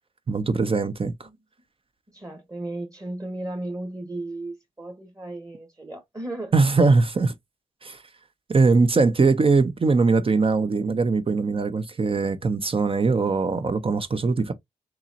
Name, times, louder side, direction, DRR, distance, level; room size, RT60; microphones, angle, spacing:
voice 1, 0.3-1.3 6.5-7.3 7.8-8.0 8.5-14.5, right 4 dB, 40° right, 0.7 m, -21 dB
voice 2, 2.1-6.5, right 2 dB, 25° right, 1.4 m, -35 dB
3.8 x 2.9 x 2.8 m
supercardioid pair, 45°, 15 cm